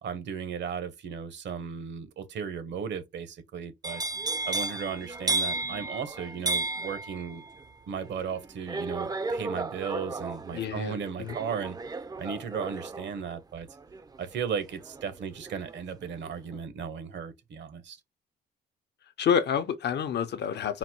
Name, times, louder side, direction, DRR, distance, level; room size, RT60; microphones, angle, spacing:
voice 1, 0.0-4.0 4.4-7.4 7.9-11.8 12.2-13.7 14.2-18.0, right 7 dB, 65° right, 1.0 m, -35 dB
sound 1, 3.8-15.8 16.1-16.6, right 3 dB, 20° right, 0.5 m, -34 dB
voice 2, 10.5-11.4 19.2-20.8, left 7 dB, 60° left, 0.7 m, -28 dB
4.0 x 2.2 x 4.4 m
cardioid pair, 90°, 20 cm